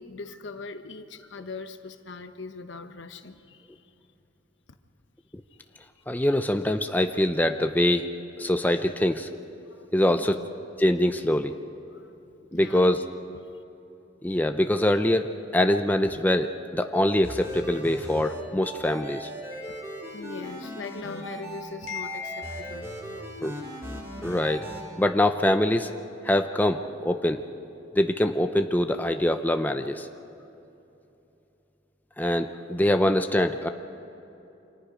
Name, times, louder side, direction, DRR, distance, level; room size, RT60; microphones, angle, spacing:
voice 1, 0.0-3.8 5.7-5.9 9.7-9.9 10.2-10.5 11.9-12.1 12.5-13.6 19.5-23.7 33.0-33.1, left 4 dB, 70° left, 8 dB, 1.0 m, -40 dB
voice 2, 6.1-8.1 8.4-9.3 9.9-10.4 10.8-11.5 12.5-13.0 14.2-19.3 23.4-23.6 24.2-24.7 25.0-25.9 26.2-27.4 28.0-30.1 32.2-33.7, left 1 dB, 10° left, 7 dB, 0.6 m, -24 dB
sound 1, 17.2-24.8, right 1 dB, 15° right, 3.7 m, -38 dB
29.0 x 25.5 x 5.1 m, 2.9 s
head